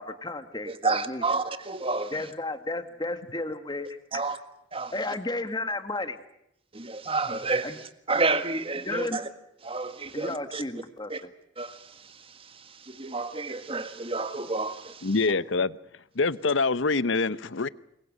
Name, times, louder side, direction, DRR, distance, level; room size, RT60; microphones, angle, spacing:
voice 1, 0.0-1.2 2.1-4.4 4.9-6.2 7.6-7.8 8.8-9.3 10.1-11.3, left 2 dB, 20° left, 8 dB, 1.8 m, -33 dB
voice 2, 0.8-2.1 4.1-4.4 4.7-4.9 6.7-7.7 8.1-9.2 9.7-10.6 11.1-11.2 11.6-11.8 12.9-15.0, right 3 dB, 30° right, 10 dB, 1.7 m, -29 dB
voice 3, 15.0-15.8 16.2-17.7, left 4 dB, 75° left, 16 dB, 0.9 m, -25 dB
27.0 x 22.5 x 6.5 m, 0.79 s
head